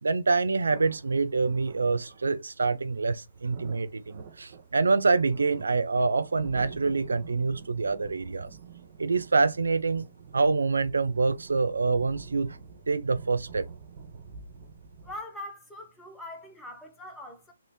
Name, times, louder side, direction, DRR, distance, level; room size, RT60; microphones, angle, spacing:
voice 1, 0.0-8.5 9.0-10.0 10.3-12.6 12.9-13.7, right 4 dB, 75° right, 0.3 m, -26 dB
sound 1, 0.7-15.2, right 5 dB, 40° right, 0.8 m, -48 dB
voice 2, 15.0-17.5, left 1 dB, 5° left, 0.8 m, -42 dB
3.3 x 2.6 x 2.9 m
figure-of-eight pair, 140°, 0 cm